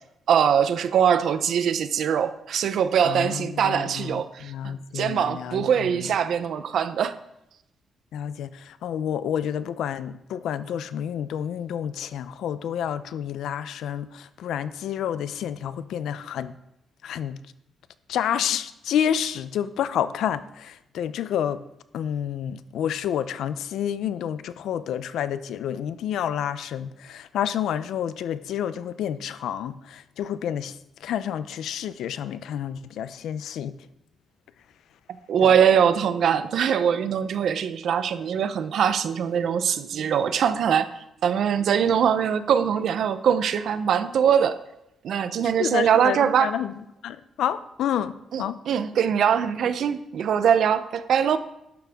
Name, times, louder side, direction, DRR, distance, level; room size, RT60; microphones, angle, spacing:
voice 1, 0.3-7.1 35.3-40.9 41.2-44.5 45.0-46.5 48.3-51.4, right 8 dB, 60° right, 11 dB, 0.7 m, -22 dB
voice 2, 3.0-6.1 8.1-16.6 17.0-17.4 18.1-21.6 21.9-30.8 31.0-33.8 35.4-35.5 45.4-48.6, left 9 dB, 85° left, 14 dB, 0.6 m, -29 dB
12.0 x 11.5 x 3.6 m, 0.85 s
cardioid pair, 160°, 0 cm